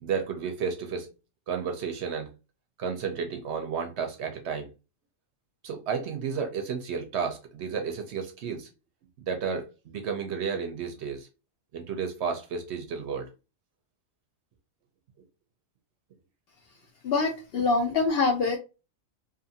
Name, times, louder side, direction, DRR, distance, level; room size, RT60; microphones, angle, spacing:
voice 1, 0.0-1.1 1.5-2.3 2.8-4.7 5.6-8.7 9.3-11.3 11.7-13.3, right 6 dB, 65° right, 0.7 m, -32 dB
voice 2, 17.0-18.6, left 4 dB, 65° left, 0.6 m, -24 dB
2.6 x 2.5 x 2.6 m
omnidirectional pair, 1.4 m